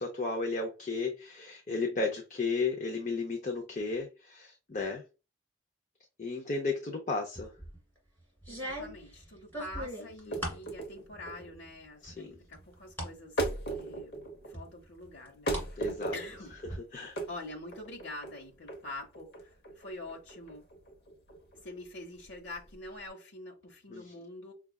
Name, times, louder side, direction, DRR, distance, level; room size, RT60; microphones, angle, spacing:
voice 1, 0.0-5.0 6.2-7.5 10.3-10.5 12.0-12.4 15.8-16.1 16.9-17.2 23.9-24.1, left 3 dB, 40° left, 0.6 m, -34 dB
sound 1, 7.4-7.8 8.4-10.7 11.1-11.7 12.0-13.2 13.6-13.7 14.5-15.7 16.0-16.8, equal, 10° left, 1.9 m, -40 dB
voice 2, 8.5-13.4 13.7-14.1 14.4-15.8 16.1-16.6 17.3-20.6 21.5-24.5, left 2 dB, 85° left, 0.9 m, -45 dB
sound 2, 10.1-23.1, right 2 dB, 60° left, 1.0 m, -39 dB
5.8 x 2.3 x 2.3 m
head